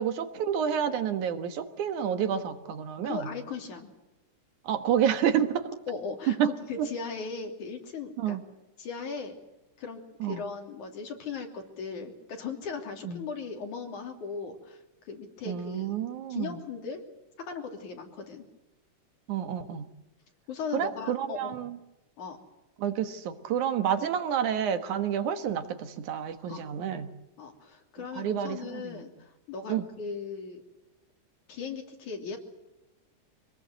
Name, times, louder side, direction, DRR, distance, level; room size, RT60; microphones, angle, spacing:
voice 1, 0.0-3.3 4.6-5.7 6.4-6.5 8.2-8.4 10.2-10.4 13.0-13.2 15.5-16.6 19.3-19.8 20.7-21.8 22.8-27.1 28.2-29.0 29.7-29.8, right 9 dB, 90° right, 9 dB, 2.9 m, -29 dB
voice 2, 3.0-3.9 5.9-8.4 8.8-9.4 9.8-14.8 15.0-15.9 16.3-17.0 17.5-18.4 20.5-21.6 22.2-22.4 26.5-26.6 27.4-30.6 31.5-32.4, left 5 dB, 90° left, 3 dB, 4.6 m, -38 dB
26.0 x 19.0 x 7.9 m, 0.97 s
omnidirectional pair, 3.3 m